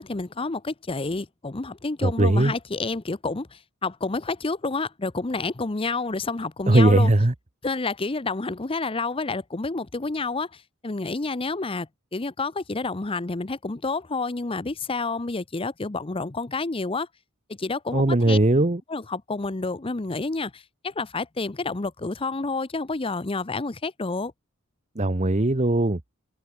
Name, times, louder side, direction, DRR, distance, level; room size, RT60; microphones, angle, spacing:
voice 1, 0.0-7.1 7.6-17.1 17.6-18.4 18.9-24.3, left 3 dB, 25° left, 0.7 m, -29 dB
voice 2, 2.0-2.5 6.7-7.3 17.9-18.8 24.9-26.0, right 2 dB, 35° right, 1.1 m, -19 dB
open air
head